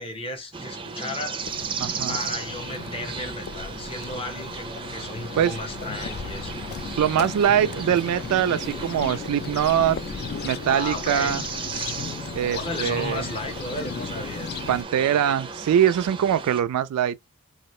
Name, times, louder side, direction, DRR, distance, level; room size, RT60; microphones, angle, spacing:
voice 1, 0.0-1.5 2.1-6.6 10.6-11.4 12.4-14.6, left 2 dB, 25° left, 0.8 m, -34 dB
sound 1, 0.5-16.6, right 5 dB, 25° right, 0.4 m, -35 dB
sound 2, 1.4-14.8, left 6 dB, 45° left, 0.3 m, -36 dB
voice 2, 1.8-2.2 5.4-5.5 7.0-10.0 10.4-11.4 12.4-13.3 14.7-17.2, right 9 dB, 85° right, 0.3 m, -22 dB
2.8 x 2.3 x 3.0 m
head